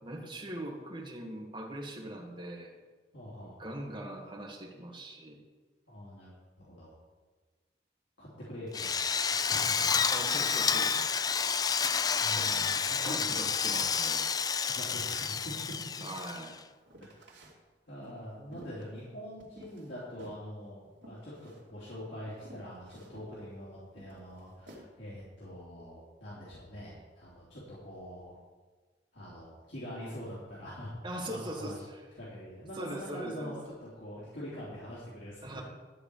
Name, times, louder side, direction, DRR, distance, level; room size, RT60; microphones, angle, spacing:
voice 1, 0.0-2.8 3.6-5.4 10.1-11.1 12.4-12.5 13.0-14.2 16.0-16.6 31.0-32.0 32.8-33.6 35.4-35.6, right 1 dB, 25° right, -1 dB, 2.0 m, -41 dB
voice 2, 3.1-3.7 5.9-6.9 8.2-9.9 12.2-13.9 14.6-15.7 17.0-17.3 17.9-28.3 29.1-31.8 32.2-35.6, equal, 80° left, -9 dB, 3.3 m, -44 dB
Drill, 8.7-16.6, left 6 dB, 20° left, 0.3 m, -30 dB
sound 1, 16.9-17.6 18.0-19.9 20.2-20.4 21.0-21.6 22.0-22.1 22.4-23.3 24.0-24.8, right 1 dB, 80° right, 2.5 m, -53 dB
13.0 x 4.9 x 8.6 m, 1.4 s
head